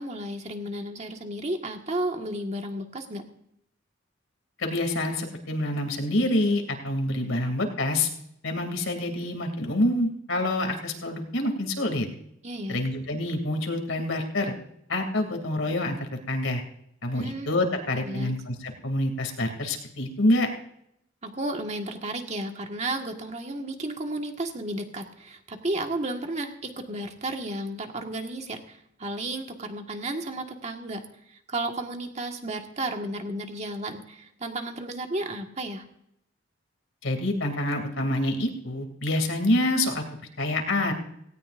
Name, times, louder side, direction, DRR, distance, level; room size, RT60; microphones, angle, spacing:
voice 1, 0.0-3.2 12.4-12.8 17.1-17.5 18.0-18.3 21.2-31.0 31.3-35.8, right 1 dB, 35° right, 4 dB, 1.6 m, -33 dB
voice 2, 4.6-8.1 8.4-12.1 12.7-14.5 14.9-16.0 16.3-16.6 17.0-20.5 37.0-40.0 40.4-40.9, left 1 dB, 85° left, 5 dB, 2.7 m, -26 dB
18.0 x 17.5 x 2.6 m, 0.75 s
head